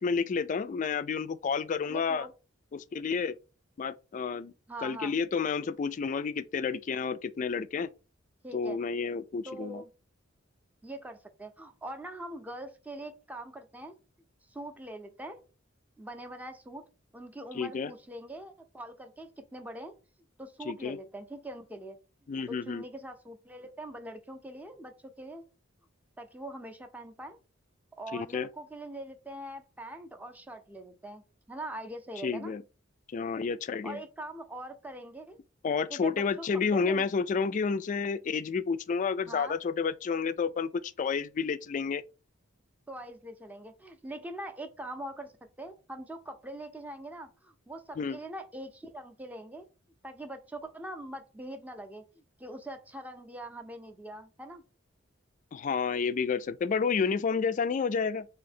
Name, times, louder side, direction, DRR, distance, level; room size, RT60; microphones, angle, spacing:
voice 1, 0.0-2.3 2.7-3.3 3.8-4.5 4.8-7.9 8.5-9.8 17.5-17.9 20.7-21.0 22.3-22.8 28.1-28.5 32.2-32.6 33.1-34.0 35.6-42.0 48.0-48.2 55.5-58.3, left 5 dB, 40° left, 0.3 m, -30 dB
voice 2, 1.9-2.3 4.7-5.1 8.4-8.8 9.5-9.9 10.8-14.0 14.5-15.4 16.0-16.8 17.1-19.9 20.4-22.0 22.5-25.4 26.2-27.4 28.0-31.2 31.5-32.5 33.8-35.4 35.9-37.1 39.3-39.6 42.9-45.3 45.6-49.7 50.0-54.6, right 1 dB, 10° right, 0.5 m, -43 dB
3.7 x 2.8 x 4.2 m
head